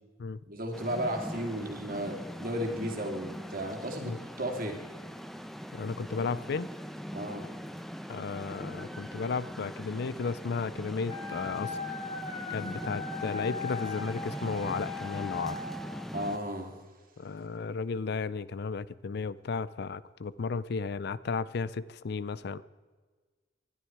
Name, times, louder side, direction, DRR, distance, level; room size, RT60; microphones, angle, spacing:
voice 1, 0.5-4.7 7.1-7.4 16.1-16.7, right 1 dB, 50° right, 2 dB, 2.8 m, -34 dB
sound 1, 0.7-16.4, equal, ahead, 0.8 m, -41 dB
voice 2, 5.7-6.7 8.1-11.8 12.5-15.6 17.2-22.6, left 4 dB, 60° left, 18 dB, 0.5 m, -34 dB
Wind instrument woodwind instrument, 11.0-15.8, left 5 dB, 40° left, 4.2 m, -39 dB
20.0 x 12.5 x 4.7 m, 1.4 s
head